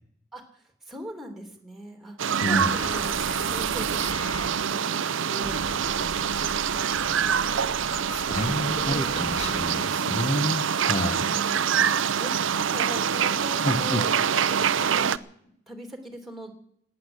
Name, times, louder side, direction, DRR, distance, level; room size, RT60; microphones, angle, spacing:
voice 1, 0.3-3.1 3.5-7.2 7.9-9.2 11.0-11.8 12.2-14.1 14.4-16.6, equal, ahead, 5 dB, 3.0 m, -41 dB
sound 1, 2.2-15.2, right 7 dB, 70° right, 0.6 m, -25 dB
sound 2, 2.5-4.4 5.4-9.6, left 2 dB, 85° left, 1.9 m, -39 dB
voice 2, 8.1-11.3 13.6-14.0, equal, 30° left, 6 dB, 1.1 m, -29 dB
18.0 x 10.0 x 8.1 m, 0.69 s
head